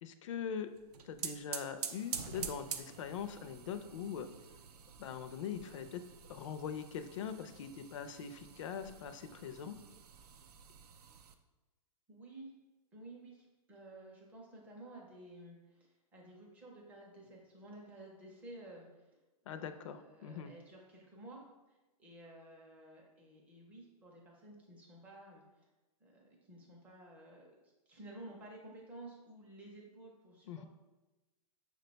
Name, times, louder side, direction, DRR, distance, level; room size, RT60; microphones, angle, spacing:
voice 1, 0.0-0.7 1.0-4.3 5.0-6.0 6.3-9.8 19.5-20.5 30.5-30.6, left 7 dB, 50° left, 9 dB, 0.4 m, -42 dB
sound 1, 0.7-11.3, right 7 dB, 75° right, 0.5 m, -47 dB
voice 2, 12.1-12.5 12.9-19.1 19.5-25.7 26.0-27.5 27.9-30.6, right 1 dB, 5° right, -2 dB, 0.5 m, -53 dB
6.1 x 2.2 x 3.9 m, 1.1 s
hypercardioid pair, 165°, 20 cm